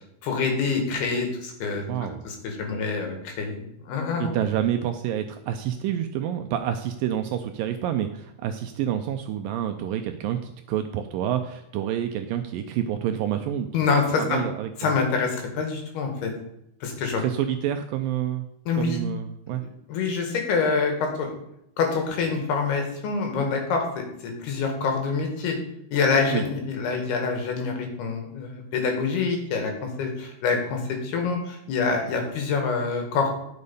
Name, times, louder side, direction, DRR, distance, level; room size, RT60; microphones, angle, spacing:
voice 1, 0.2-4.4 13.7-14.4 14.8-16.3 16.8-17.2 18.7-19.0 19.9-21.3 21.8-25.6 25.9-33.4, left 4 dB, 80° left, 3 dB, 3.9 m, -26 dB
voice 2, 1.9-2.3 4.2-13.7 14.2-14.9 17.2-18.5 18.7-19.6 26.3-26.5, right 10 dB, 80° right, 7 dB, 2.1 m, -28 dB
10.5 x 6.7 x 5.5 m, 0.79 s
omnidirectional pair, 4.5 m